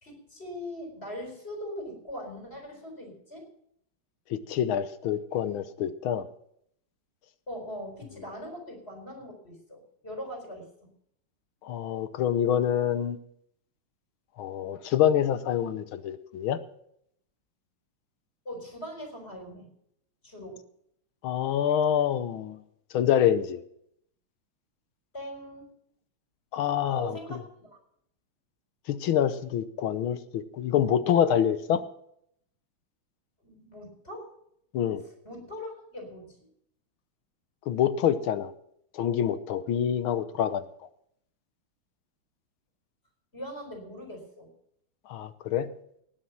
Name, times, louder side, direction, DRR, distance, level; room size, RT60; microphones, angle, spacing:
voice 1, 0.0-3.5 7.5-10.9 18.4-19.7 20.2-20.6 25.1-25.7 26.9-27.8 33.4-34.3 35.0-36.4 43.3-44.5, equal, 25° left, 3 dB, 4.2 m, -41 dB
voice 2, 4.3-6.2 11.6-13.2 14.4-16.6 21.2-22.6 22.9-23.6 26.5-27.4 28.9-31.8 34.7-35.0 37.7-38.5 38.9-40.6 45.1-45.7, left 9 dB, 75° left, 12 dB, 1.6 m, -26 dB
19.0 x 7.4 x 5.9 m, 0.71 s
omnidirectional pair, 2.3 m